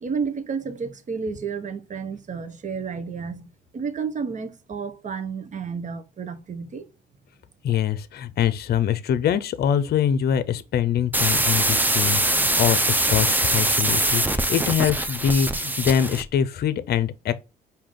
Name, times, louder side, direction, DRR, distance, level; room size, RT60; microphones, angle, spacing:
voice 1, 0.0-3.5 3.7-6.9, right 5 dB, 40° right, 0.9 m, -31 dB
voice 2, 7.6-17.3, left 9 dB, 55° left, 0.6 m, -24 dB
sound 1, 11.1-16.3, right 1 dB, 10° right, 0.6 m, -22 dB
4.9 x 2.8 x 3.6 m
supercardioid pair, 70°, 19 cm